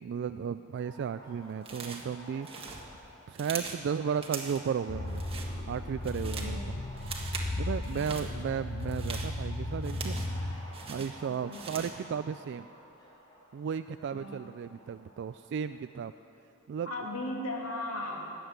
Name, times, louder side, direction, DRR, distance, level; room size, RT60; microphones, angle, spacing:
voice 1, 0.0-2.5 3.3-5.2 5.7-6.6 7.5-10.2 10.9-12.7 13.5-16.1 16.7-16.9, right 7 dB, 55° right, 11 dB, 0.3 m, -34 dB
sound 1, 0.8-15.8, equal, 20° left, 4.2 m, -53 dB
sound 2, 1.6-2.1 2.4-3.8 4.2-4.7 5.1-5.5 5.9-6.6 7.0-7.5 7.8-8.3 8.8-10.4 10.7-12.0, right 5 dB, 25° right, 1.6 m, -41 dB
sound 3, 4.9-10.6, left 1 dB, 50° left, 1.0 m, -35 dB
voice 2, 6.4-6.7 7.9-8.4 11.3-11.6 14.1-14.4 16.9-18.3, left 1 dB, 80° left, -1 dB, 2.7 m, -37 dB
19.5 x 7.8 x 9.4 m, 2.8 s
head